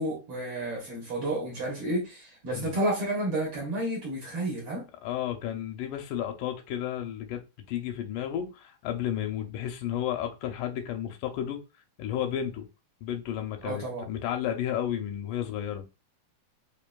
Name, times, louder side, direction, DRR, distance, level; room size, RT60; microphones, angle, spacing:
voice 1, 0.0-4.8 13.6-14.0, right 1 dB, 55° right, 1.8 m, -31 dB
voice 2, 5.0-11.6 12.0-12.7 13.0-15.8, left 10 dB, 80° left, 2.2 m, -32 dB
5.2 x 2.9 x 2.2 m
omnidirectional pair, 3.8 m